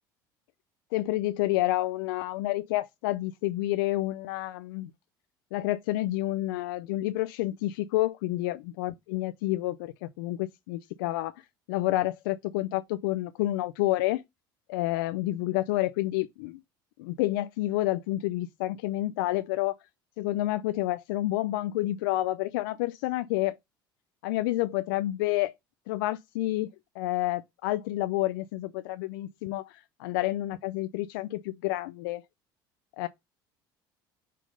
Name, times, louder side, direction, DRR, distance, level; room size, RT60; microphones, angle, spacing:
voice 1, 0.9-4.9 5.5-11.3 11.7-14.2 14.7-16.6 17.0-19.8 20.2-23.6 24.2-25.5 25.9-26.7 27.0-32.2 33.0-33.1, left 16 dB, 75° left, 0.5 m, -29 dB
4.9 x 3.8 x 5.2 m
hypercardioid pair, 70°, 12 cm